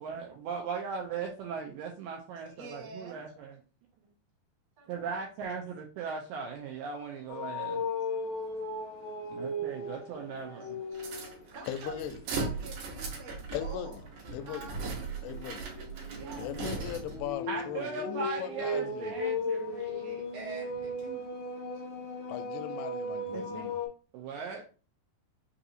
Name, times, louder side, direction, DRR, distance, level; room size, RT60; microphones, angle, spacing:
voice 1, 0.0-3.6 4.9-7.9 9.3-10.8 17.5-21.2 23.3-23.7 24.1-24.6, right 5 dB, 90° right, 2.0 m, -38 dB
voice 2, 2.4-3.2 4.8-5.0 8.1-8.2 10.6-11.0 11.5-14.0 14.4-14.8 16.1-16.5 21.5-21.6, right 3 dB, 45° right, 0.9 m, -47 dB
sound 1, 7.3-11.4 11.9-12.2 14.6-23.9, left 2 dB, 70° left, 1.1 m, -37 dB
sound 2, 10.9-17.3, right 4 dB, 70° right, 2.2 m, -38 dB
voice 3, 11.7-12.2 13.5-14.0 14.3-14.7 15.2-15.7 16.4-19.2 22.3-23.8, left 11 dB, 85° left, 2.5 m, -39 dB
5.8 x 2.7 x 2.6 m
omnidirectional pair, 4.5 m